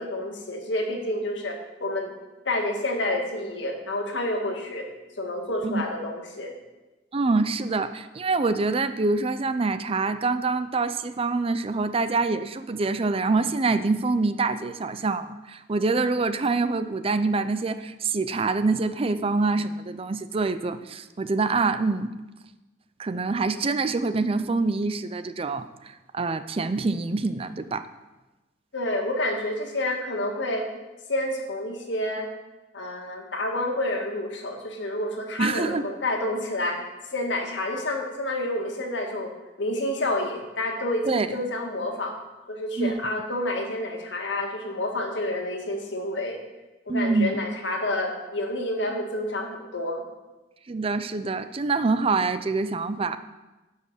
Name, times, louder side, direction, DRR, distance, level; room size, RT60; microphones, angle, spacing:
voice 1, 0.0-2.1 2.4-4.8 5.2-6.5 28.7-30.6 31.1-32.3 32.7-36.8 37.1-39.3 39.6-42.1 42.5-46.4 46.8-50.0, left 1 dB, 85° left, 2 dB, 1.8 m, -29 dB
voice 2, 7.1-22.1 23.0-27.9 35.4-35.8 41.1-41.3 42.8-42.9 46.9-47.4 50.7-53.2, right 3 dB, 30° right, 12 dB, 0.5 m, -25 dB
11.0 x 5.5 x 6.6 m, 1.1 s
head